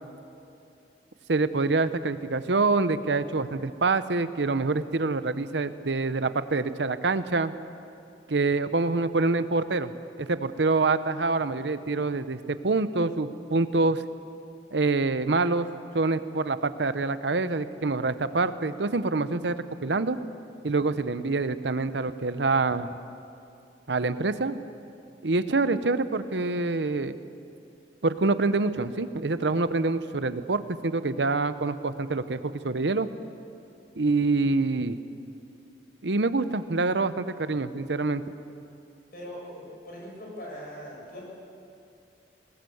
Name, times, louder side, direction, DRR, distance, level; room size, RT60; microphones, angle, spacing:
voice 1, 1.3-7.5 8.3-9.9 10.2-14.0 14.7-15.7 15.9-19.5 19.8-20.2 20.6-22.9 23.9-24.6 25.2-27.2 28.0-33.1 34.0-35.0 36.0-38.2, right 3 dB, 80° right, 12 dB, 0.8 m, -26 dB
voice 2, 39.1-41.2, equal, 55° left, -2 dB, 7.4 m, -41 dB
21.0 x 19.0 x 7.9 m, 2.6 s
head